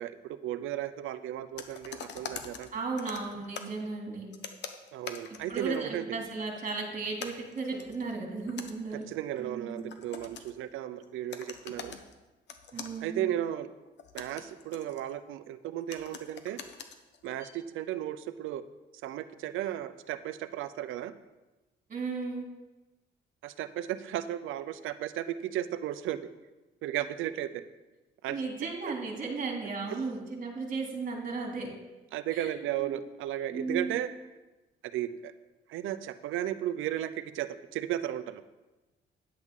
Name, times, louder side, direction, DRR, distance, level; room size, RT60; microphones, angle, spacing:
voice 1, 0.0-2.7 4.9-6.2 8.9-12.0 13.0-13.7 14.1-16.6 17.2-18.6 19.0-21.1 23.4-26.3 26.8-27.6 28.2-28.4 28.9-29.0 32.1-34.1 34.9-35.3 35.7-38.4, right 12 dB, 85° right, 12 dB, 0.6 m, -35 dB
sound 1, 1.6-3.8 4.3-6.0 6.4-6.8 7.1-10.7 11.0-11.1 11.3-12.1 12.5-13.0 13.9-15.3 15.9-17.6, left 6 dB, 65° left, 0.9 m, -44 dB
voice 2, 2.7-4.3 5.5-9.0 9.4-9.8 12.7-13.2 21.9-22.4 28.3-31.7 32.3-32.5 32.8-32.9 33.5-34.0, right 4 dB, 40° right, 0 dB, 2.7 m, -35 dB
10.5 x 8.0 x 3.7 m, 1.1 s
cardioid pair, 90°, 20 cm